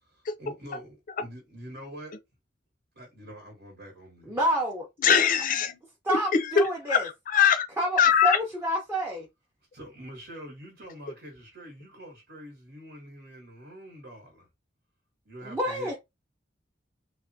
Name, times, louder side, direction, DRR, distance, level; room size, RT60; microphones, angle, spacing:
voice 1, 0.4-2.1 2.9-4.4 9.7-14.5 15.2-15.9, equal, 70° right, 1.1 m, -45 dB
voice 2, 4.3-4.9 6.0-7.1 7.8-9.3 15.4-15.9, equal, 15° right, 0.6 m, -28 dB
voice 3, 5.0-5.8 6.6-6.7 6.9-7.7 8.0-8.4, left 8 dB, 50° left, 0.4 m, -21 dB
3.4 x 2.1 x 2.6 m
head